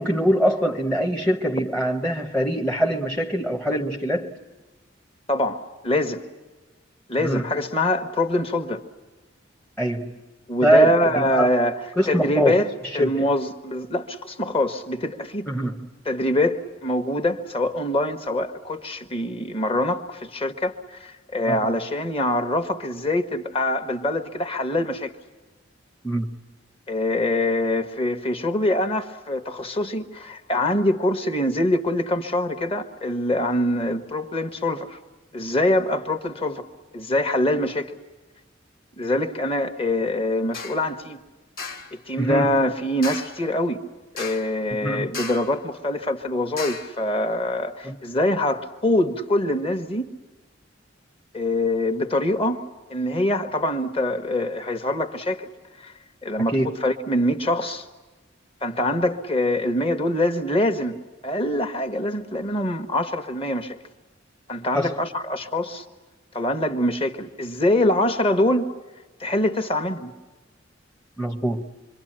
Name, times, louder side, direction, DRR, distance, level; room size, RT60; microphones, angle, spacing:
voice 1, 0.0-4.4 7.2-7.5 9.8-10.2 10.6-11.5 12.0-13.3 15.5-15.9 21.5-21.6 26.0-26.3 42.2-42.7 44.8-45.1 47.8-48.0 56.5-56.8 64.7-65.0 71.2-71.6, equal, 5° left, 0.8 m, -23 dB
voice 2, 5.3-6.2 7.1-8.8 10.5-11.8 12.1-15.5 16.0-25.1 26.9-35.0 35.3-36.6 36.9-37.9 39.0-41.2 41.9-43.8 44.1-50.1 51.3-52.6 52.9-55.5 55.8-55.9 56.2-57.9 58.6-61.0 61.2-63.8 64.5-65.8 66.3-68.7 69.2-70.1, left 1 dB, 30° left, 1.3 m, -24 dB
sound 1, 40.5-40.9 41.6-42.0 43.0-43.5 44.2-44.6 45.1-45.6 46.6-47.0, left 4 dB, 50° left, 1.4 m, -35 dB
26.5 x 24.0 x 8.9 m
head